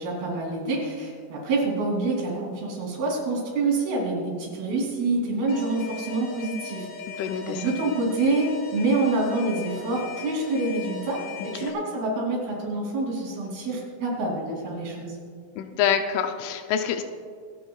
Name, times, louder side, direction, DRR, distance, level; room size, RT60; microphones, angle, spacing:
voice 1, 0.0-6.9 7.4-11.2 11.5-15.2, right 2 dB, 55° right, -2 dB, 4.9 m, -26 dB
Alarm, 5.5-11.7, left 5 dB, 65° left, 1.4 m, -39 dB
voice 2, 7.1-7.6 11.5-11.7 15.6-17.0, left 8 dB, 85° left, 6 dB, 3.2 m, -26 dB
26.0 x 12.5 x 2.4 m, 2.2 s
omnidirectional pair, 5.4 m